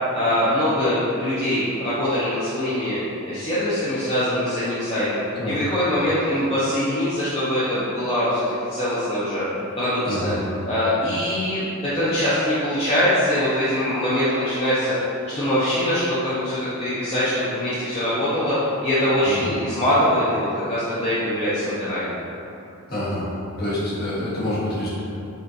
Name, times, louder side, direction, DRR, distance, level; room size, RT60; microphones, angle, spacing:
voice 1, 0.1-3.0 3.2-8.4 8.7-9.4 9.8-10.3 10.7-22.1, left 1 dB, 25° left, -12 dB, 0.6 m, -23 dB
voice 2, 10.0-10.4 19.2-19.5 22.9-23.2 23.6-24.9, left 1 dB, 45° left, -9 dB, 1.1 m, -26 dB
5.3 x 2.4 x 2.7 m, 2.8 s
head